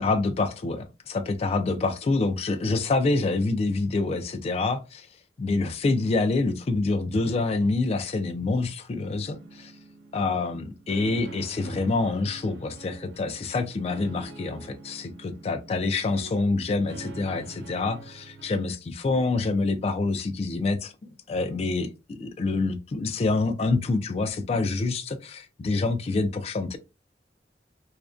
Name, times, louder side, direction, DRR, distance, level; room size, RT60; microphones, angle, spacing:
voice 1, 0.0-5.1 5.4-9.7 10.1-26.8, left 3 dB, 35° left, 0.3 m, -26 dB
sound 1, 9.0-18.6, right 3 dB, 75° right, 0.5 m, -45 dB
2.5 x 2.1 x 2.3 m
head